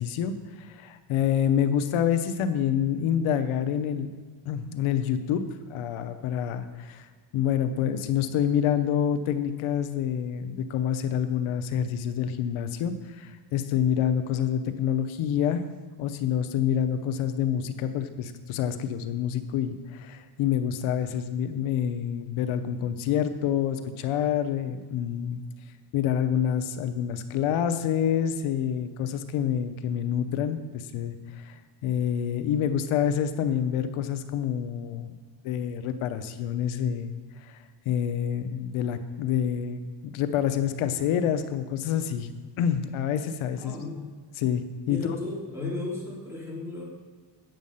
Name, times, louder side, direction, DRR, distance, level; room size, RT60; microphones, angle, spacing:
voice 1, 0.0-4.1 4.5-7.1 7.3-15.6 16.0-25.4 25.9-35.1 35.4-37.6 37.9-42.3 42.6-43.7 44.4-45.1, left 9 dB, 90° left, 9 dB, 0.9 m, -27 dB
voice 2, 43.6-44.0 44.9-46.8, left 3 dB, 5° right, -4 dB, 3.4 m, -34 dB
9.2 x 7.4 x 5.5 m, 1.5 s
cardioid pair, 100°, 48 cm